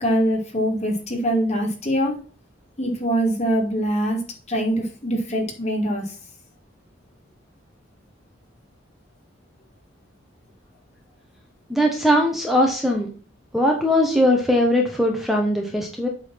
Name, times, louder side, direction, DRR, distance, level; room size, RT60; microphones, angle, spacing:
voice 1, 0.0-2.2 2.8-4.2 4.5-6.2, equal, 35° left, 1 dB, 2.2 m, -23 dB
voice 2, 11.7-13.1 13.5-16.1, left 1 dB, ahead, 1 dB, 1.2 m, -20 dB
8.1 x 4.1 x 5.7 m, 0.37 s
head